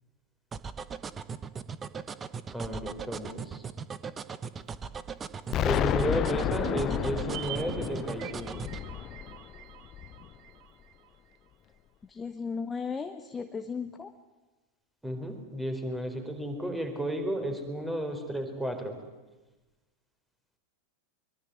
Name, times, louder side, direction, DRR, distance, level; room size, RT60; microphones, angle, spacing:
sound 1, 0.5-8.8, right 6 dB, 20° right, 1.2 m, -38 dB
voice 1, 2.5-3.6 5.6-8.7 15.0-19.0, right 1 dB, 5° right, 5 dB, 4.6 m, -33 dB
Explosion, 5.5-10.4, left 11 dB, 30° left, 0.8 m, -31 dB
sound 2, 6.6-11.1 11.3-11.4, right 13 dB, 40° right, 1.8 m, -44 dB
voice 2, 12.1-14.1, left 5 dB, 15° left, 8 dB, 1.2 m, -35 dB
23.5 x 23.0 x 9.5 m, 1.2 s
figure-of-eight pair, 90°, 0 cm